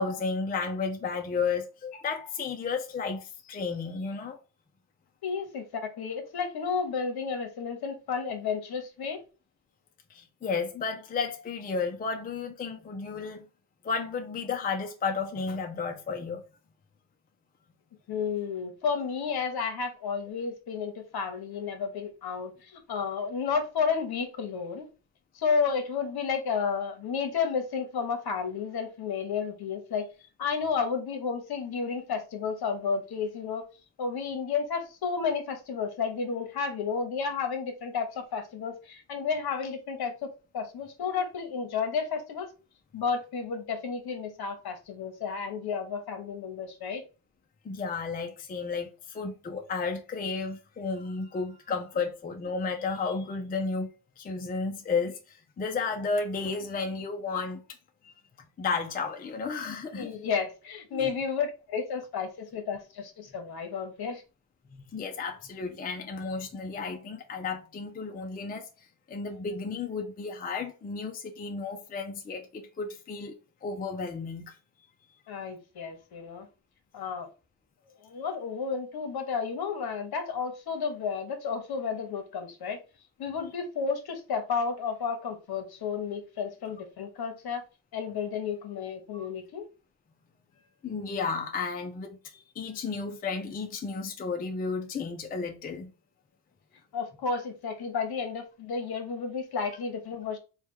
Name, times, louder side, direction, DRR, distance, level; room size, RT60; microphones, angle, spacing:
voice 1, 0.0-4.4 10.1-13.4 13.8-16.4 47.6-53.9 54.2-57.6 58.0-58.1 58.6-60.2 60.9-61.1 64.7-68.7 69.1-73.3 73.6-74.6 89.1-89.3 90.8-95.9, left 4 dB, 20° left, 0.5 m, -33 dB
voice 2, 5.2-9.2 18.1-24.8 25.3-30.1 30.4-33.7 34.0-42.5 42.9-47.0 60.0-64.2 75.3-76.5 76.9-77.3 78.0-82.8 83.2-87.6 87.9-89.7 96.9-100.4, left 5 dB, 50° left, 1.1 m, -32 dB
3.3 x 2.4 x 4.4 m
cardioid pair, 100°, 47 cm